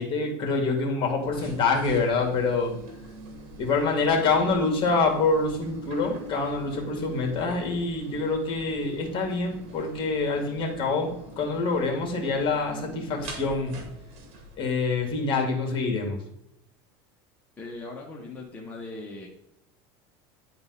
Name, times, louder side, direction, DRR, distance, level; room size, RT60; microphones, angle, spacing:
voice 1, 0.0-2.7 3.6-13.8 14.6-16.2, left 3 dB, 40° left, 2 dB, 2.1 m, -26 dB
sound 1, 1.2-15.1, right 1 dB, 55° right, 2.0 m, -44 dB
voice 2, 17.6-19.3, left 2 dB, 10° left, -3 dB, 1.3 m, -39 dB
10.5 x 4.0 x 4.0 m, 0.84 s
supercardioid pair, 130°, 13 cm